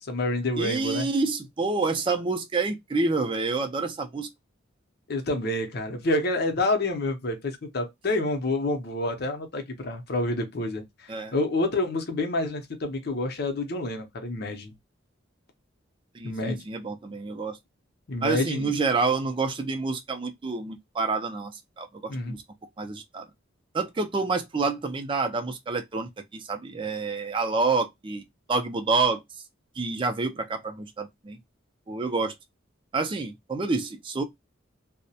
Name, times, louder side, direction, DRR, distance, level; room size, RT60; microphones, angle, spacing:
voice 1, 0.0-1.1 5.1-14.7 16.2-16.6 18.1-18.8 22.1-22.4, left 2 dB, 55° left, 0.6 m, -28 dB
voice 2, 0.6-4.3 11.1-11.3 16.1-17.6 18.2-21.5 21.8-22.4 22.8-23.3 23.7-29.2 29.8-31.4 31.9-32.3 32.9-34.2, right 3 dB, 25° right, 0.4 m, -28 dB
2.2 x 2.0 x 2.7 m
head